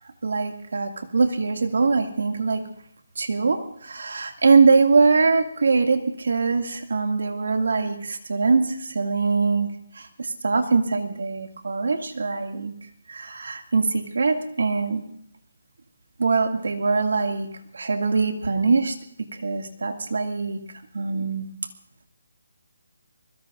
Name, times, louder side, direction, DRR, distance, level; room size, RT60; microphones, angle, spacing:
voice 1, 0.2-2.6 3.2-9.7 9.9-12.7 13.1-15.0 16.2-17.5 17.7-18.9 19.3-20.6 20.9-21.5, right 4 dB, 75° right, 4 dB, 2.3 m, -22 dB
24.5 x 21.0 x 2.6 m, 0.71 s
hypercardioid pair, 165°, 0 cm